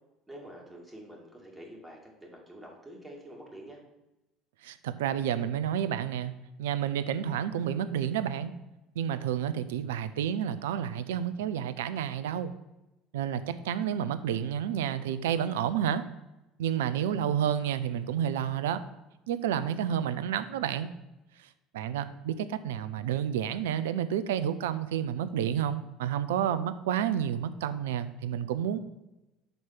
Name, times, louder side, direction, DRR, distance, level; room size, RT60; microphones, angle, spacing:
voice 1, 0.3-3.8, right 1 dB, 10° right, -2 dB, 2.2 m, -47 dB
voice 2, 4.6-6.3 6.6-8.5 9.0-12.5 13.1-16.0 16.6-18.8 19.3-20.9 21.7-28.8, right 9 dB, 70° right, 13 dB, 0.4 m, -30 dB
5.3 x 4.6 x 5.9 m, 0.96 s
figure-of-eight pair, 60°, 0 cm